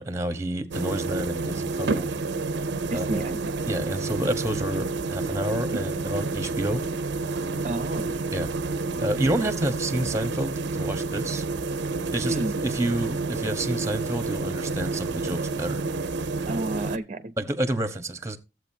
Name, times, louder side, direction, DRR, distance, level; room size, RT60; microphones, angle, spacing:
voice 1, 0.0-2.1 2.5-3.2 3.7-6.8 8.3-8.5 9.0-11.4 12.1-12.3 12.6-15.8 16.2-16.3 17.4-18.4, right 1 dB, 15° right, 1.1 m, -29 dB
sound 1, 0.7-17.0, right 3 dB, 85° right, 0.6 m, -29 dB
voice 2, 2.9-3.6 7.6-8.1 12.2-12.6 16.5-17.3, right 2 dB, 40° right, 0.7 m, -30 dB
14.0 x 7.9 x 2.7 m
head